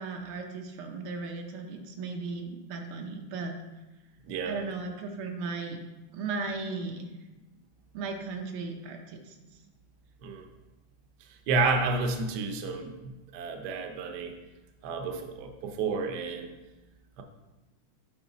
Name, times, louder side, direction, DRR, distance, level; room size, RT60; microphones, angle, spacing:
voice 1, 0.0-3.6 4.5-5.8 6.1-7.1 7.9-9.4, right 4 dB, 85° right, 3 dB, 1.8 m, -36 dB
voice 2, 11.5-14.3 14.8-16.5 17.2-17.3, right 4 dB, 60° right, 4 dB, 1.2 m, -30 dB
7.4 x 5.7 x 4.0 m, 1.1 s
omnidirectional pair, 2.3 m